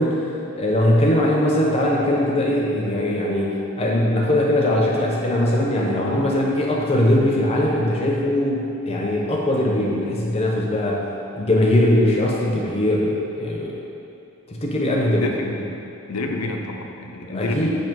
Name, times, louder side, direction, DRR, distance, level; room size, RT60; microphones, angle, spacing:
voice 1, 0.0-11.0 11.3-13.8 14.5-15.2 17.3-17.7, left 1 dB, 25° left, -2 dB, 0.6 m, -20 dB
voice 2, 15.1-15.8 16.1-17.7, left 2 dB, 85° left, 2 dB, 0.6 m, -28 dB
7.2 x 2.9 x 4.5 m, 2.8 s
head